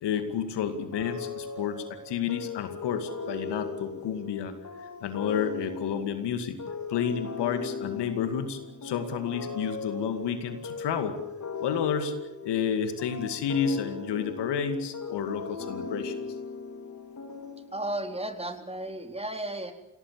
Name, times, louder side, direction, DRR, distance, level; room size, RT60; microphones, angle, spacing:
voice 1, 0.0-4.5 5.0-6.6 6.9-11.2 11.6-12.1 12.4-16.1, left 7 dB, 65° left, 9 dB, 2.3 m, -30 dB
sound 1, 0.9-18.1, left 4 dB, 40° left, 3.7 m, -38 dB
voice 2, 17.7-19.7, right 1 dB, 15° right, 6 dB, 3.8 m, -34 dB
27.0 x 17.5 x 8.4 m, 0.88 s
hypercardioid pair, 40°, 44 cm